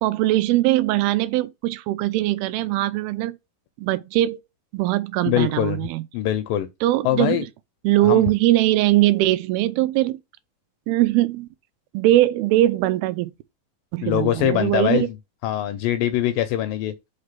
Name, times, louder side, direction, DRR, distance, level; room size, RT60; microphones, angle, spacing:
voice 1, 0.0-3.4 3.8-4.4 4.7-6.0 6.8-7.4 7.8-10.2 10.9-11.5 11.9-13.3 13.9-15.1, right 15 dB, 85° right, 2.4 m, -21 dB
voice 2, 5.3-5.9 6.1-6.7 7.1-7.4 8.0-8.2 14.0-15.2 15.4-16.9, left 12 dB, 80° left, 2.0 m, -23 dB
5.7 x 3.3 x 5.6 m
omnidirectional pair, 4.3 m